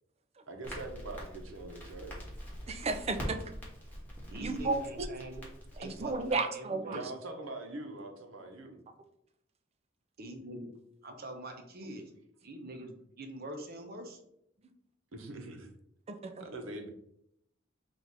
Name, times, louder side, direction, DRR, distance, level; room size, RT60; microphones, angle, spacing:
voice 1, 0.5-2.2 6.9-8.8 15.1-15.7 16.4-16.9, right 2 dB, 80° right, 4 dB, 0.9 m, -43 dB
Crackle, 0.6-6.4, equal, 10° left, 1.3 m, -44 dB
voice 2, 2.7-3.4 4.4-5.1 5.8-7.0 16.1-16.4, right 3 dB, 30° right, 7 dB, 0.5 m, -33 dB
voice 3, 4.3-5.5 5.8-7.0 10.2-10.7 11.0-12.0 12.4-14.2, right 1 dB, 50° right, 4 dB, 0.8 m, -44 dB
4.1 x 2.6 x 4.7 m, 0.75 s
head